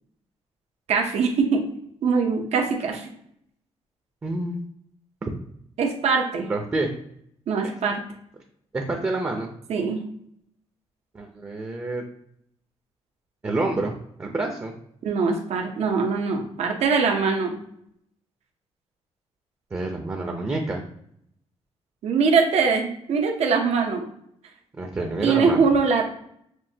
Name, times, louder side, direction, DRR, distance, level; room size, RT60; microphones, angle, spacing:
voice 1, 0.9-1.6 2.0-3.1 5.8-6.5 7.5-8.0 9.7-10.0 15.0-17.6 22.0-24.0 25.2-26.0, right 5 dB, 70° right, 2 dB, 0.7 m, -22 dB
voice 2, 4.2-4.6 6.5-6.9 7.6-7.7 8.7-9.5 11.1-12.0 13.4-14.7 19.7-20.8 24.8-25.6, right 2 dB, 25° right, 2 dB, 0.6 m, -28 dB
6.1 x 2.2 x 2.8 m, 0.71 s
cardioid pair, 120°, 11 cm